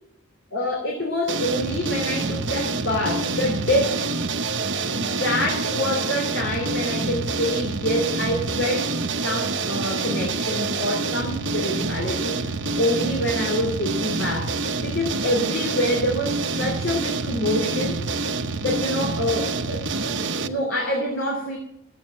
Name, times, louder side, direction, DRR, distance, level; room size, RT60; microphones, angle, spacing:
voice 1, 0.5-4.1 5.0-8.9 9.2-12.5 12.8-14.5 14.8-18.0 18.6-19.9 20.4-21.6, left 1 dB, 60° left, -1 dB, 3.0 m, -26 dB
sound 1, 1.3-20.5, right 3 dB, 60° right, 1.0 m, -27 dB
14.5 x 8.5 x 7.6 m, 0.79 s
head